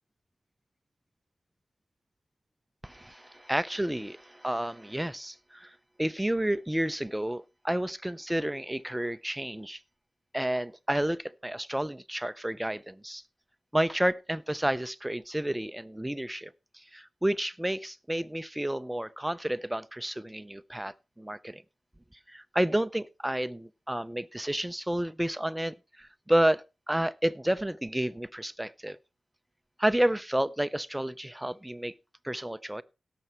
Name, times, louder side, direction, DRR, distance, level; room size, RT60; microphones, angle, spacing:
voice 1, 2.8-5.7 6.0-9.8 10.3-13.2 13.7-16.5 16.9-21.6 22.3-29.0 29.8-31.9 32.2-32.8, right 1 dB, 10° right, 0.5 m, -30 dB
17.0 x 6.8 x 4.4 m
wide cardioid pair, 105°, 0 cm